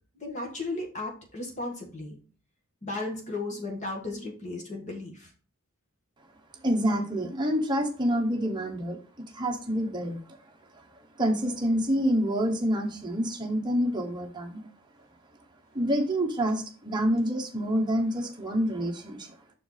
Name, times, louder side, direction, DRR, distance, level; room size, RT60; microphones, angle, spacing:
voice 1, 0.2-2.2 2.8-5.3, left 2 dB, 30° left, 1 dB, 1.6 m, -35 dB
voice 2, 6.6-9.0 9.3-10.4 11.2-14.7 15.7-19.3, equal, 20° right, 1 dB, 1.0 m, -27 dB
6.2 x 4.5 x 4.0 m, 0.39 s
head